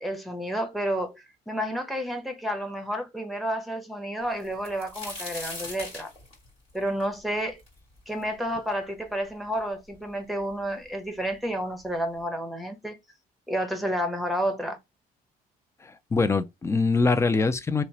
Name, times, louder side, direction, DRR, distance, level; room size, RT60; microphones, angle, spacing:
voice 1, 0.0-6.1 6.7-7.6 8.1-13.0 13.5-14.8, equal, ahead, 0.8 m, -30 dB
sound 1, 4.4-8.2 8.7-8.8 9.6-9.7 9.9-10.6 11.5-11.6 12.0-12.2, left 2 dB, 35° left, 1.8 m, -40 dB
voice 2, 15.8-17.8, left 4 dB, 15° left, 0.3 m, -23 dB
2.8 x 2.0 x 2.7 m
cardioid pair, 110°, 17 cm